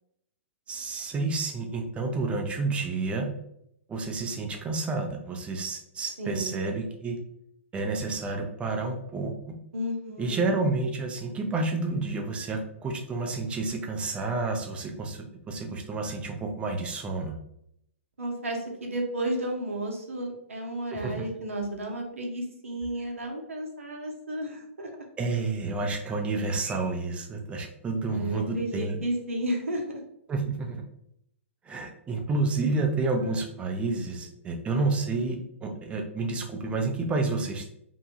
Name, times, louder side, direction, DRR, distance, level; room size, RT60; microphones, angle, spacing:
voice 1, 0.7-3.3 3.9-7.2 7.7-9.6 10.2-17.3 20.9-21.2 25.2-29.0 30.3-30.8 31.7-37.7, right 3 dB, 15° right, 2 dB, 0.4 m, -30 dB
voice 2, 6.2-6.6 9.7-10.4 18.2-25.0 28.1-30.0, right 1 dB, 80° right, 1 dB, 0.7 m, -32 dB
2.6 x 2.2 x 2.7 m, 0.74 s
figure-of-eight pair, 115°, 7 cm